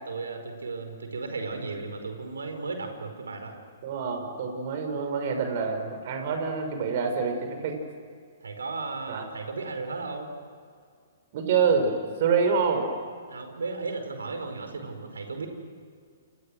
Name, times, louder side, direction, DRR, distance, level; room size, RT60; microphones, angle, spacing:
voice 1, 0.1-3.5 8.4-10.3 13.3-15.5, right 3 dB, 75° right, 6 dB, 5.0 m, -35 dB
voice 2, 3.8-7.8 9.1-9.3 11.3-12.8, right 5 dB, 50° right, 5 dB, 6.1 m, -26 dB
29.5 x 29.0 x 6.6 m, 2.2 s
figure-of-eight pair, 120°, 0 cm